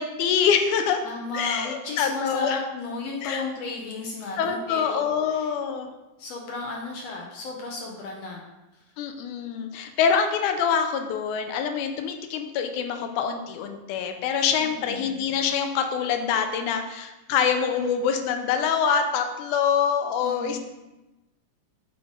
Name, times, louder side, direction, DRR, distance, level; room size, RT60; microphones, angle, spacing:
voice 1, 0.0-1.0 1.3-2.6 3.2-3.4 4.4-5.9 9.0-20.6, left 7 dB, 85° left, 6 dB, 2.1 m, -25 dB
voice 2, 1.0-5.0 5.3-5.5 6.2-8.5 14.6-15.2 20.2-20.6, left 3 dB, 70° left, -1 dB, 1.7 m, -34 dB
8.6 x 3.8 x 3.6 m, 1.0 s
omnidirectional pair, 3.5 m